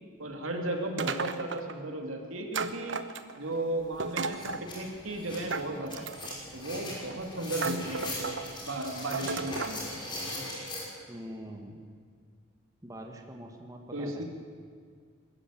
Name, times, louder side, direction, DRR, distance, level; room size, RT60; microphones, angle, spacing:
voice 1, 0.2-3.0 3.4-6.1 6.5-8.4 8.7-9.8 13.9-14.2, right 1 dB, 90° right, 3 dB, 2.8 m, -35 dB
sound 1, 1.0-1.8 2.5-3.5 4.0-4.7 5.5-6.4 7.1-7.2 7.6-8.4 9.1-9.8, right 4 dB, 65° right, 1.0 m, -34 dB
sound 2, 3.5-3.6 3.9-10.8, left 1 dB, 25° left, 6.0 m, -40 dB
voice 2, 11.1-11.8 12.8-14.2, equal, 15° right, 2 dB, 1.8 m, -44 dB
21.5 x 14.0 x 9.0 m, 2.1 s
head